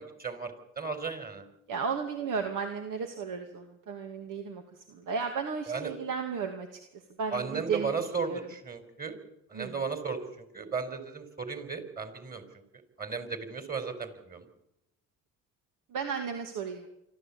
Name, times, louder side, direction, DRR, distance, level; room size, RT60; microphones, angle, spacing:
voice 1, 0.0-1.5 5.7-5.9 7.3-9.2 9.5-12.4 13.0-14.5, right 5 dB, 25° right, 8 dB, 4.6 m, -35 dB
voice 2, 1.7-4.6 4.9-6.7 7.2-7.9 8.3-8.4 9.5-9.7 15.9-16.9, right 6 dB, 60° right, 4 dB, 2.5 m, -34 dB
25.5 x 13.0 x 8.7 m, 0.85 s
supercardioid pair, 75°, 36 cm